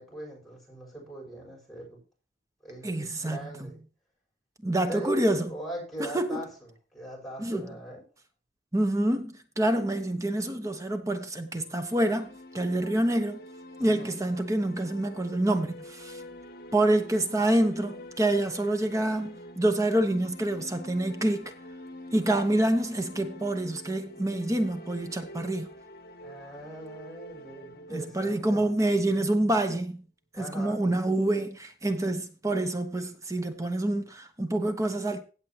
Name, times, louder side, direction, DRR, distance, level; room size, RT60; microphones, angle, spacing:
voice 1, 0.0-2.0 2.6-3.8 4.8-5.2 5.5-8.0 13.8-14.2 26.2-28.7 30.3-30.8, equal, ahead, 6.8 m, -41 dB
voice 2, 2.8-3.5 4.6-5.5 6.0-6.4 7.4-7.7 8.7-13.4 13.8-16.2 16.7-21.5 22.1-25.7 27.9-30.0 30.4-35.2, right 1 dB, 20° right, 1.1 m, -27 dB
sound 1, 11.4-29.4, left 1 dB, 55° left, 1.8 m, -47 dB
17.0 x 7.3 x 3.0 m
head